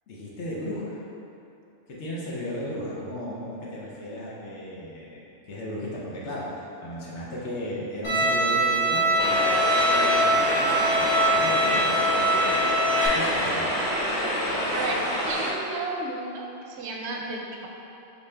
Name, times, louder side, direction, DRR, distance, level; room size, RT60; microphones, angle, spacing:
voice 1, 0.1-1.0 1.9-5.2 5.5-12.7 13.1-13.8, left 1 dB, 70° left, -6 dB, 1.0 m, -35 dB
Bowed string instrument, 8.0-13.1, right 1 dB, 90° left, 1.6 m, -23 dB
sound 1, 9.2-15.5, equal, 25° left, 0.5 m, -27 dB
voice 2, 14.7-17.7, right 2 dB, 70° right, 0 dB, 0.8 m, -33 dB
5.1 x 2.7 x 3.3 m, 2.9 s
omnidirectional pair, 1.3 m